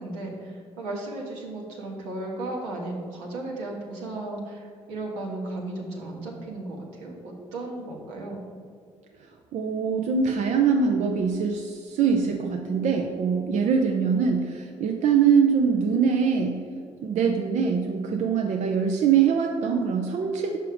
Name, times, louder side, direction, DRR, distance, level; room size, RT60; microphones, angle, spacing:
voice 1, 0.0-8.4, right 2 dB, 85° right, -1 dB, 1.2 m, -35 dB
voice 2, 9.5-16.6 17.0-20.6, right 6 dB, 60° right, 2 dB, 0.6 m, -23 dB
5.6 x 5.0 x 5.0 m, 2.3 s
hypercardioid pair, 55°, 14 cm